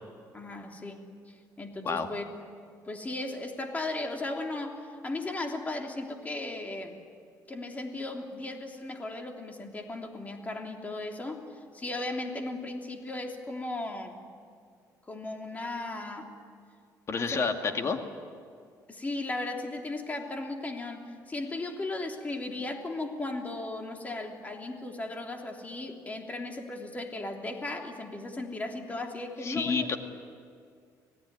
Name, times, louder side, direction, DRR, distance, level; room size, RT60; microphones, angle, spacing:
voice 1, 0.3-2.3 2.9-7.0 7.5-14.2 15.1-16.3 17.1-17.9 18.9-29.9, left 2 dB, 20° left, 2 dB, 3.2 m, -36 dB
voice 2, 17.1-18.0 29.4-30.0, left 5 dB, 40° left, 5 dB, 2.3 m, -29 dB
26.0 x 18.5 x 9.7 m, 2.2 s
cardioid pair, 115°, 7 cm